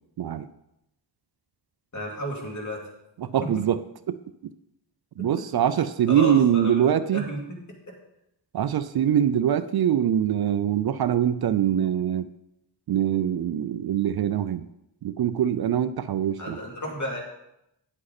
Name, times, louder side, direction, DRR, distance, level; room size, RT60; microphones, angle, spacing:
voice 1, 1.9-2.8 3.4-3.5 5.2-5.3 6.1-6.8 7.1-7.6 16.4-17.2, equal, 40° left, -2 dB, 2.7 m, -32 dB
voice 2, 3.2-4.5 5.2-7.3 8.5-12.3 12.9-14.7 15.0-16.6, right 10 dB, 60° right, 13 dB, 0.5 m, -23 dB
9.6 x 7.8 x 4.1 m, 0.84 s
wide cardioid pair, 125°, 44 cm